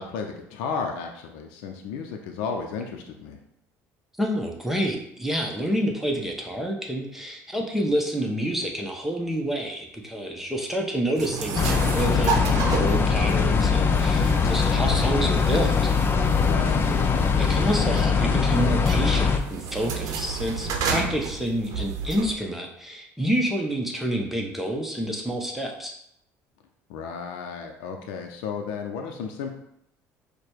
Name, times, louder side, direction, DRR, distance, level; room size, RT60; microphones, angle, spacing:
voice 1, 0.0-3.4 16.4-16.9 26.9-29.5, left 5 dB, 85° left, 3 dB, 0.6 m, -33 dB
voice 2, 4.2-15.7 16.9-25.9, equal, 5° right, 1 dB, 0.9 m, -28 dB
sound 1, 11.2-22.3, right 5 dB, 65° right, 0.7 m, -32 dB
sound 2, 11.5-19.4, left 5 dB, 35° left, 0.5 m, -22 dB
4.9 x 2.2 x 4.4 m, 0.73 s
supercardioid pair, 95°, 7 cm